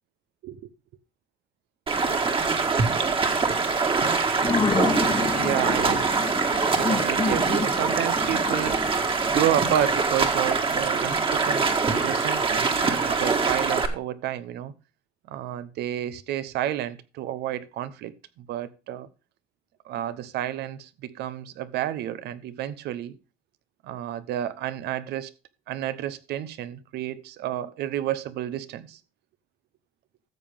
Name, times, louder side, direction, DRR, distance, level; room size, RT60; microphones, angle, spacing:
Stream, 1.9-13.9, right 4 dB, 30° right, 1.8 m, -24 dB
sound 1, 4.2-11.8, left 4 dB, 30° left, 1.2 m, -31 dB
voice 1, 5.4-6.2 6.7-14.7 15.3-19.1 19.8-23.2 23.8-25.3 25.7-29.0, right 12 dB, 75° right, 0.9 m, -30 dB
13.5 x 7.3 x 3.6 m
cardioid pair, 110°, 17 cm